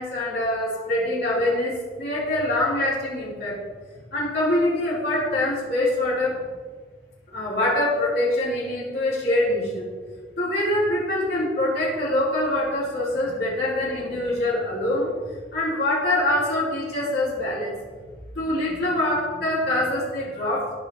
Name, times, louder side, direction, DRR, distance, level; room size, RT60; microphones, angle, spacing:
voice 1, 0.0-3.6 4.1-6.4 7.3-9.8 10.4-15.1 15.5-17.7 18.4-20.7, left 1 dB, 60° left, -6 dB, 4.0 m, -24 dB
18.5 x 8.5 x 3.2 m, 1.5 s
head